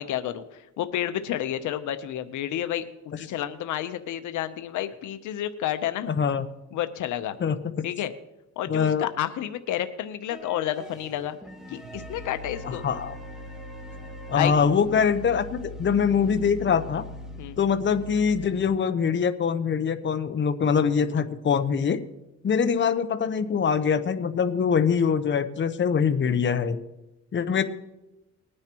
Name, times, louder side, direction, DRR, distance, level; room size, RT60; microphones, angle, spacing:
voice 1, 0.0-6.1 6.7-7.4 7.8-8.1 8.6-11.4 11.7-12.8 14.3-14.5 17.4-17.6, left 11 dB, 80° left, 10 dB, 0.8 m, -30 dB
voice 2, 8.7-9.0 12.6-13.1 14.3-17.0 17.6-22.0 22.4-26.8 27.3-27.6, left 6 dB, 40° left, 9 dB, 0.9 m, -23 dB
sound 1, 10.3-18.9 20.2-20.3 21.0-21.1, left 1 dB, ahead, 2.4 m, -41 dB
20.5 x 9.7 x 3.0 m, 0.96 s
cardioid pair, 90°, 30 cm